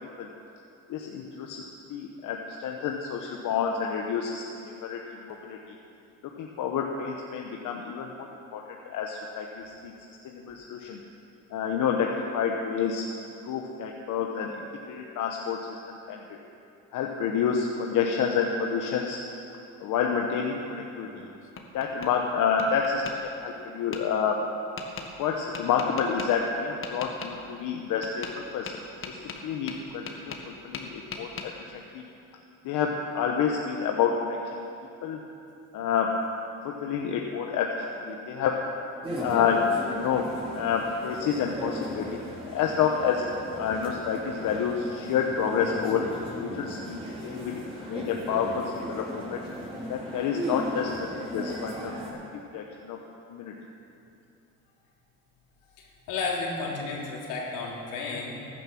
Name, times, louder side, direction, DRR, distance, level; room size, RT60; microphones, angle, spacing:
voice 1, 0.9-5.6 6.4-8.3 8.5-8.6 8.9-9.9 10.2-11.0 11.5-14.5 14.9-15.8 16.1-16.2 16.9-19.2 19.8-21.3 21.7-23.0 23.4-24.4 25.2-28.3 28.5-28.7 29.1-31.3 31.7-32.0 32.6-34.6 35.0-35.2 35.7-36.1 36.6-38.6 39.2-40.2 40.5-43.2 43.5-49.4 49.9-52.2 52.5-53.0 53.3-53.5, left 7 dB, 70° left, 1 dB, 1.2 m, -29 dB
Tap, 21.1-22.1 22.6-23.1 23.9-24.0 24.8-25.1 25.5-26.3 26.8-27.3 28.0-28.4 28.7-30.5 30.7-31.5, left 5 dB, 40° left, 1.6 m, -39 dB
sound 1, 39.0-52.1, equal, 15° right, 4.0 m, -37 dB
voice 2, 55.8-58.3, left 3 dB, 90° left, -2 dB, 3.0 m, -32 dB
14.5 x 10.5 x 6.0 m, 2.7 s
cardioid pair, 105°, 32 cm